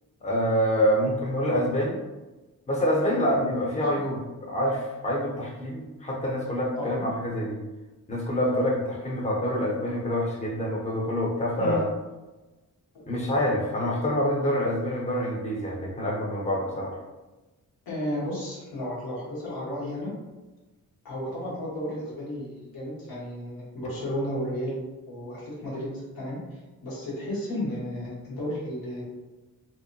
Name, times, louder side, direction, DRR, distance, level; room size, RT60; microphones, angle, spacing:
voice 1, 0.2-2.0 2.7-7.6 8.1-11.9 13.1-17.0, equal, 20° left, -2 dB, 0.6 m, -26 dB
voice 2, 3.3-4.0 6.8-7.0 11.6-11.8 12.9-13.0 17.9-20.1 21.0-29.0, left 1 dB, 85° left, -6 dB, 1.2 m, -33 dB
2.7 x 2.1 x 2.6 m, 1.1 s
cardioid pair, 65°, 35 cm